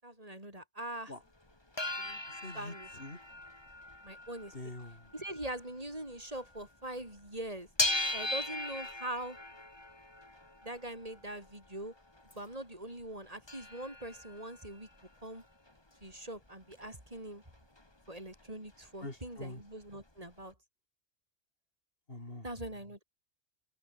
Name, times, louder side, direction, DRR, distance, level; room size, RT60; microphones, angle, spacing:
voice 1, 0.0-1.1 2.0-2.2 2.5-2.9 4.0-4.5 5.1-7.7 8.1-9.4 10.6-11.9 12.3-14.9 15.2-15.4 16.0-17.4 18.1-20.5 22.4-23.0, right 1 dB, 30° right, 7.7 m, -42 dB
sound 1, 1.5-6.7 7.0-12.5 13.0-13.1 13.3-17.2 17.5-18.4 18.7-18.8 19.0-20.1 20.5-20.6, left 2 dB, 20° left, 2.3 m, -39 dB
voice 2, 2.4-3.2 4.5-5.1 19.0-19.6 22.1-22.4, left 2 dB, 55° left, 5.1 m, -44 dB
open air
omnidirectional pair, 1.2 m